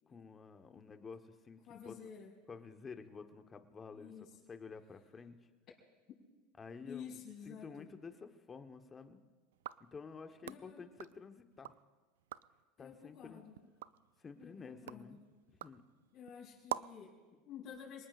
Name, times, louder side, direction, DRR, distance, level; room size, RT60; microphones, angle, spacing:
voice 1, 0.1-1.9 2.5-5.4 6.6-9.2 9.9-11.8 12.8-13.4 14.2-15.2 15.6-15.8, left 5 dB, 25° left, 7 dB, 1.2 m, -51 dB
voice 2, 1.7-2.3 3.9-4.3 6.8-7.9 10.4-10.8 12.8-13.5 14.4-15.2 16.1-18.1, left 7 dB, 40° left, -6 dB, 5.2 m, -51 dB
sound 1, 9.5-11.8 12.2-12.6 13.1-17.1, right 13 dB, 85° right, 0.4 m, -48 dB
27.0 x 19.5 x 2.5 m, 1.3 s
supercardioid pair, 110°, 0 cm